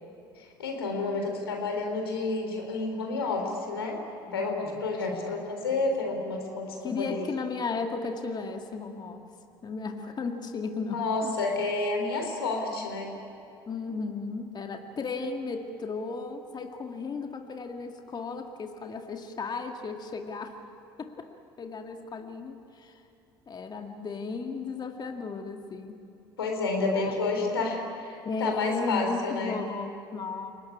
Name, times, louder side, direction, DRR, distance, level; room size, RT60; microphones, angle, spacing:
voice 1, 0.4-4.0 4.3-7.3 10.9-13.1 26.4-29.6, left 3 dB, 85° left, 2 dB, 3.8 m, -30 dB
voice 2, 4.3-4.8 5.1-5.3 5.7-5.8 6.8-9.3 9.6-11.3 12.7-12.9 13.7-20.6 21.0-21.3 21.6-23.0 23.5-26.0 26.8-27.5 28.2-30.5, left 4 dB, 35° left, 4 dB, 1.9 m, -35 dB
28.5 x 18.5 x 9.8 m, 2.8 s
hypercardioid pair, 60°, 12 cm